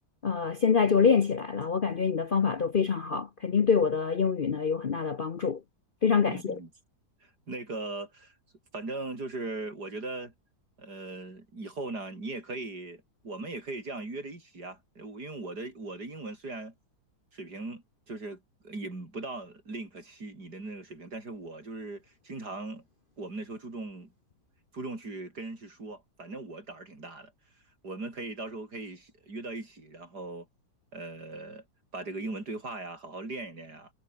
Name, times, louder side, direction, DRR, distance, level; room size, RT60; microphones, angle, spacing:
voice 1, 0.2-5.6 6.0-6.6, left 6 dB, 45° left, 0.8 m, -25 dB
voice 2, 6.3-6.7 7.2-8.3 8.7-10.3 10.8-16.7 17.3-22.8 23.2-24.1 24.7-27.3 27.8-30.5 30.9-31.6 31.9-33.9, right 2 dB, 75° right, 6.3 m, -39 dB
omnidirectional pair, 1.7 m